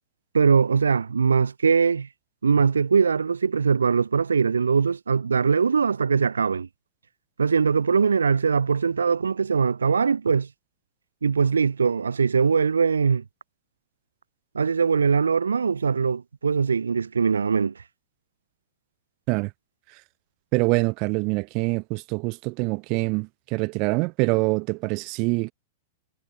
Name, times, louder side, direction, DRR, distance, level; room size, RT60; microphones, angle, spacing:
voice 1, 0.3-2.1 2.4-6.7 7.4-10.5 11.2-13.2 14.5-17.7, right 5 dB, 75° right, 0.8 m, -21 dB
voice 2, 20.5-25.5, right 29 dB, 40° right, 1.6 m, -25 dB
figure-of-eight pair, 100°, 0 cm